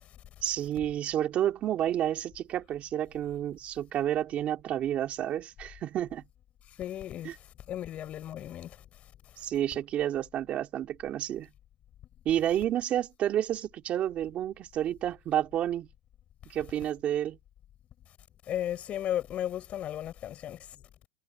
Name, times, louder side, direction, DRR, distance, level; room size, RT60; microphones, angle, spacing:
voice 1, 0.4-6.2 7.2-7.3 9.4-11.5 12.2-15.9 16.5-17.4, right 11 dB, 25° right, 2.6 m, -30 dB
voice 2, 6.8-8.8 18.5-20.8, left 11 dB, 25° left, 4.4 m, -35 dB
supercardioid pair, 150°, 5 cm